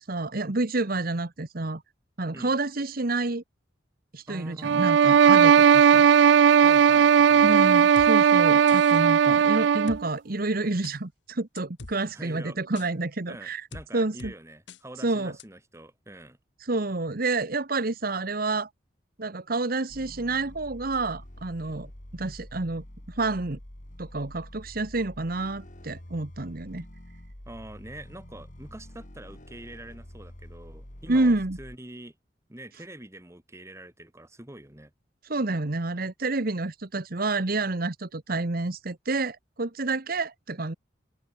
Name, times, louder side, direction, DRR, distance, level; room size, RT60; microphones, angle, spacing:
voice 1, 0.0-1.8 2.2-3.4 4.1-6.1 7.4-13.6 13.9-14.3 15.0-15.3 16.6-18.7 19.2-22.8 23.2-23.6 24.0-26.9 31.1-31.6 35.3-40.7, right 2 dB, 50° right, 1.2 m, -29 dB
voice 2, 4.3-4.9 6.6-7.6 12.1-12.6 13.3-16.4 27.5-32.1 32.5-34.9, right 1 dB, 15° right, 2.0 m, -45 dB
sound 1, 4.6-10.0, right 7 dB, 70° right, 0.3 m, -17 dB
sound 2, 8.0-8.1 8.7-9.0 9.9-10.0 10.8-11.0 11.6-12.0 12.8-12.9 13.7-13.9 14.2-14.3 14.7-14.8 15.4-15.5, left 3 dB, 70° left, 1.4 m, -42 dB
sound 3, 19.9-31.8, left 1 dB, 45° left, 2.8 m, -46 dB
open air
head